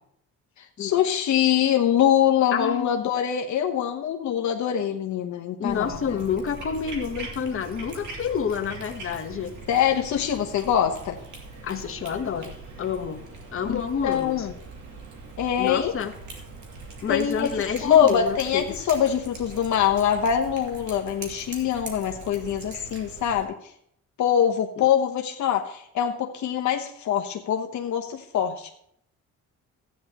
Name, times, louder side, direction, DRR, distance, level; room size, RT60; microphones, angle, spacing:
voice 1, 0.6-6.2 9.7-11.2 13.7-14.5 15.4-15.9 17.1-23.6 24.2-28.7, left 9 dB, 70° left, 3 dB, 0.9 m, -24 dB
voice 2, 2.5-2.9 5.6-9.5 11.6-13.2 13.5-14.5 15.6-16.1 17.0-18.7 24.8-24.9, left 7 dB, 45° left, 5 dB, 1.2 m, -29 dB
Cat, 5.7-23.4, right 3 dB, 70° right, 2.5 m, -41 dB
13.5 x 9.4 x 2.9 m, 0.69 s
cardioid pair, 90°, 30 cm